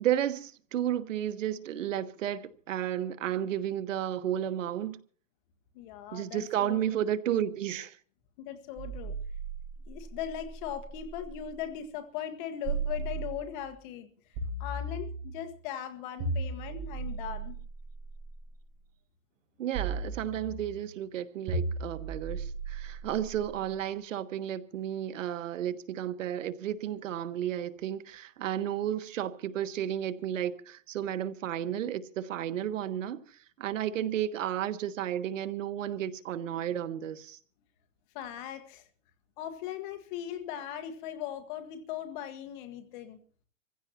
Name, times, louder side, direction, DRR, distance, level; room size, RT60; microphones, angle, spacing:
voice 1, 0.0-5.0 6.1-8.0 19.6-33.2 33.6-37.4, right 10 dB, 80° right, 1.4 m, -32 dB
voice 2, 5.7-6.8 8.4-9.1 9.9-14.1 14.6-17.6 38.1-38.8 39.4-43.2, left 9 dB, 40° left, 1.7 m, -39 dB
sound 1, 8.8-11.5 12.6-13.7 14.4-15.5 16.2-18.5 19.7-20.8 21.5-23.6, right 3 dB, 40° right, 7.2 m, -36 dB
26.0 x 15.5 x 2.9 m
supercardioid pair, 155°, 38 cm